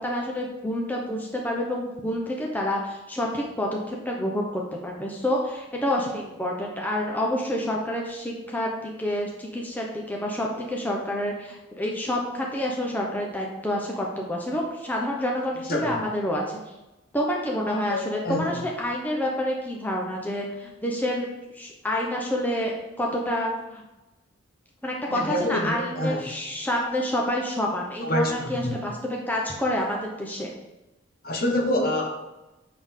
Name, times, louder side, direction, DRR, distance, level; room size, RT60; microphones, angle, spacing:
voice 1, 0.0-16.6 17.1-21.3 21.5-22.7 23.0-23.8 24.8-30.5, left 1 dB, 10° left, -2 dB, 0.8 m, -28 dB
voice 2, 15.7-16.0 17.9-18.5 25.1-26.3 28.0-28.8 31.2-32.1, left 1 dB, 45° left, 1 dB, 1.2 m, -27 dB
7.7 x 6.6 x 3.7 m, 1.0 s
head